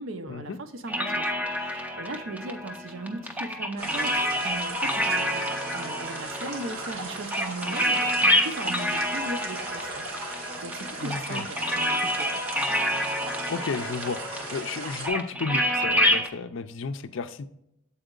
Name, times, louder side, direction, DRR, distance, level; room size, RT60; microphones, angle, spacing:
voice 1, 0.0-12.4, right 2 dB, 65° right, 8 dB, 0.7 m, -38 dB
sound 1, 0.9-16.3, equal, 5° right, 0.5 m, -28 dB
sound 2, 3.8-15.1, right 2 dB, 85° right, 1.5 m, -37 dB
voice 2, 11.0-11.4 13.5-14.2 14.5-17.5, left 4 dB, 60° left, 11 dB, 0.4 m, -32 dB
7.9 x 4.2 x 3.8 m, 0.78 s
head